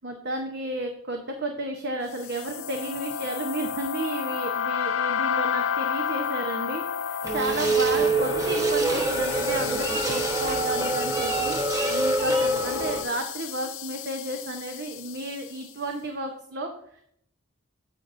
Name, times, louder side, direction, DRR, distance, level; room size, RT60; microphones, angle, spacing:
voice 1, 0.0-11.6 11.9-17.0, right 2 dB, 60° right, 4 dB, 0.9 m, -32 dB
sound 1, 2.2-15.5, left 8 dB, 80° left, 0.6 m, -32 dB
sound 2, 7.2-13.0, right 2 dB, 15° right, 1.2 m, -25 dB
9.8 x 8.2 x 2.6 m, 0.68 s
head